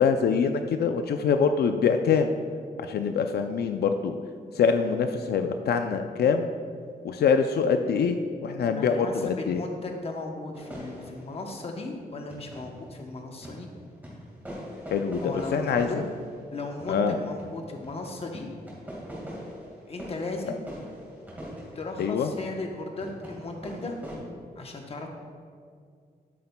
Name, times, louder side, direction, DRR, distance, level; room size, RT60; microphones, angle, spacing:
voice 1, 0.0-2.3 2.8-4.2 4.5-6.5 7.0-9.6 14.9-16.0 16.9-17.2 22.0-22.3, left 6 dB, 80° left, 7 dB, 0.4 m, -24 dB
voice 2, 8.5-13.7 15.2-16.0 16.5-18.5 19.9-20.7 21.7-23.9 24.6-25.1, left 2 dB, 35° left, 2 dB, 0.8 m, -36 dB
sound 1, 10.5-13.0 13.4-24.2, equal, 10° right, 1.7 m, -43 dB
10.5 x 8.4 x 2.2 m, 2.2 s
wide cardioid pair, 175°, 16 cm